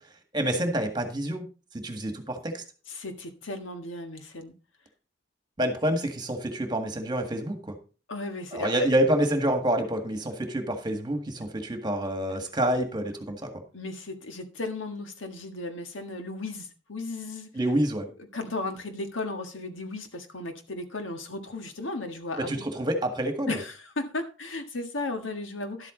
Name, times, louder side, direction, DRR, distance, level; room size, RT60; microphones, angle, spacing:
voice 1, 0.3-1.5 1.7-2.6 5.6-7.8 8.5-13.5 17.5-18.1 22.4-23.6, right 1 dB, 25° right, 5 dB, 1.8 m, -27 dB
voice 2, 2.9-4.5 8.1-8.9 13.7-17.5 18.3-22.6 23.5-25.9, left 2 dB, 90° left, 6 dB, 1.7 m, -35 dB
12.0 x 8.2 x 3.9 m, 0.36 s
head